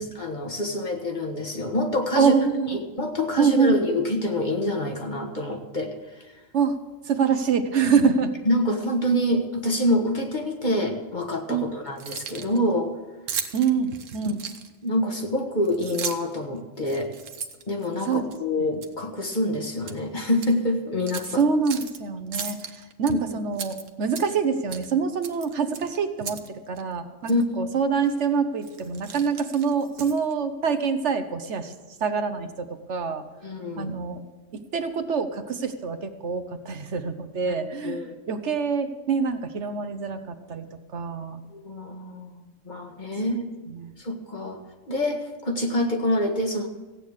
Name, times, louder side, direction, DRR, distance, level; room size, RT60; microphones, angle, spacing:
voice 1, 0.0-2.3 2.7-6.3 8.4-12.9 14.2-14.3 14.8-17.1 17.7-21.4 23.1-23.2 27.3-27.4 33.4-33.9 37.5-37.6 37.8-38.2 41.5-42.4 42.6-43.5 44.0-44.6 44.9-46.7, left 1 dB, 40° left, 3 dB, 1.5 m, -26 dB
voice 2, 2.1-2.8 3.4-3.7 6.5-6.8 7.0-8.3 11.5-11.7 13.5-14.4 18.0-18.3 18.6-18.7 21.3-31.7 32.0-33.2 33.8-34.2 34.5-40.7 40.9-41.4 43.7-43.9, right 5 dB, 65° right, 9 dB, 1.2 m, -25 dB
Keys jangling, 11.9-12.6 13.3-14.9 15.6-16.4 16.8-18.4 18.8-19.0 19.3-20.0 20.3-20.5 21.1-22.0 22.3-23.1 23.5-24.4 24.7-24.9 25.2-26.5 26.8-26.9 27.3-27.4 28.0-28.2 28.6-30.3, right 7 dB, 85° right, 1.3 m, -36 dB
15.5 x 9.0 x 6.5 m, 1.2 s
omnidirectional pair, 1.3 m